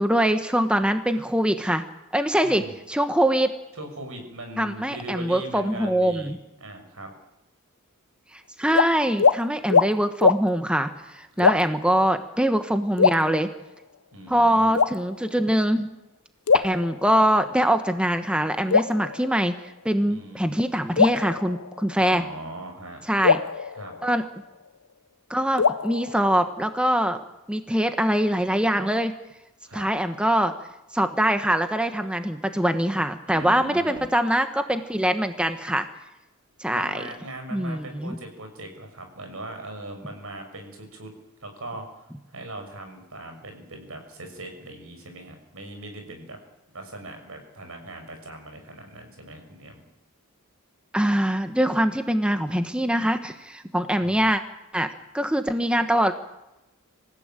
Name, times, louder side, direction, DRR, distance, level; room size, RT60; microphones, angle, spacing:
voice 1, 0.0-1.8 2.1-2.6 2.9-3.5 4.6-6.4 8.3-13.5 14.3-15.9 16.5-22.2 23.1-23.4 24.0-24.2 25.3-27.2 27.5-29.1 29.7-30.5 30.9-35.9 36.6-37.0 37.5-38.2 50.9-54.4 54.7-56.1, equal, 5° right, 8 dB, 1.2 m, -23 dB
voice 2, 2.4-2.7 3.8-6.3 6.6-7.1 11.4-11.5 14.1-14.8 20.1-20.5 22.0-23.0 23.7-24.0 29.6-29.9 33.3-34.1 36.7-41.1 41.4-46.4 46.7-49.8 54.0-54.3, right 1 dB, 70° right, 5 dB, 6.3 m, -40 dB
sound 1, 8.7-8.9 9.2-9.4 9.7-9.9 10.2-10.4 11.4-11.8 13.0-13.8 14.7-15.5 16.5-17.5 18.7-19.8 21.0-22.2 23.2-24.7 25.6-26.8, left 5 dB, 75° left, 0.8 m, -23 dB
26.5 x 16.0 x 9.0 m, 0.96 s
head